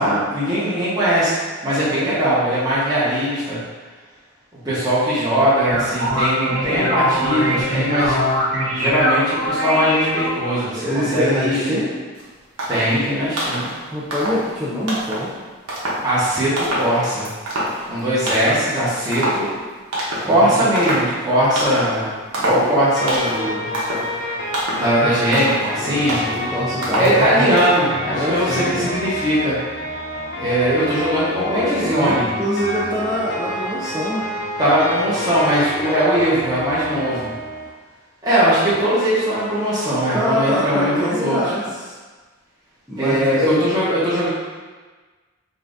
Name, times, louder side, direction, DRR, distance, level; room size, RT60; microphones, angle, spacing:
voice 1, 0.0-1.3 1.6-3.6 4.6-8.2 8.7-11.8 12.7-13.7 16.0-17.3 17.9-19.5 20.2-23.7 24.7-26.2 27.0-29.6 30.3-32.3 34.6-37.3 38.2-41.5 43.0-44.3, equal, 20° right, -10 dB, 1.1 m, -20 dB
sound 1, 5.6-10.6, equal, 55° right, 1.0 m, -22 dB
voice 2, 10.8-12.0 13.9-15.4 20.2-20.6 22.5-22.6 25.0-25.2 25.8-27.5 28.1-28.9 31.4-34.3 40.1-41.9 42.9-43.4, equal, 5° right, -10 dB, 0.4 m, -24 dB
sound 2, 12.2-12.3 12.6-13.0 13.3-13.7 14.1-14.5 14.9-15.3 15.7-16.1 16.6-17.0 17.3-18.0 18.3-18.7 19.1-19.5 19.9-20.4 20.8-21.2 21.6-22.0 22.3-22.7 23.1-23.5 23.7-24.1 24.5-24.9 25.3-25.7 26.1-26.4 26.8-27.2 27.6-27.8, right 1 dB, 85° right, 1.0 m, -25 dB
sound 3, 23.0-37.7, left 1 dB, 55° left, 0.6 m, -29 dB
5.4 x 2.5 x 2.6 m, 1.4 s
head